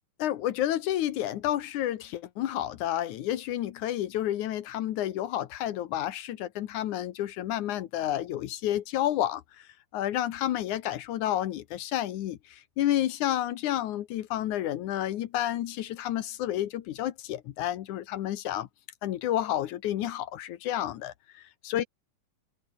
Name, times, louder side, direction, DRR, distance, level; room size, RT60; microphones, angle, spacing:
voice 1, 0.2-9.7 9.9-18.7 19.0-21.8, left 12 dB, 70° left, 2.4 m, -30 dB
omnidirectional pair, 3.8 m